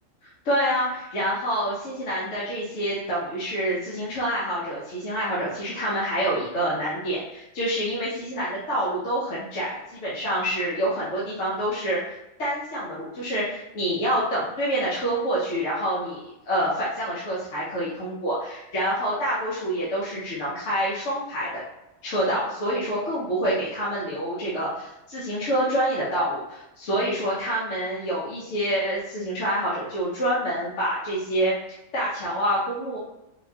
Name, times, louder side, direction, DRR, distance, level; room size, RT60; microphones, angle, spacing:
voice 1, 0.4-12.1 12.4-21.6 22.0-31.5 31.9-33.0, equal, 60° left, -8 dB, 1.1 m, -27 dB
4.0 x 2.2 x 2.7 m, 0.92 s
omnidirectional pair, 1.4 m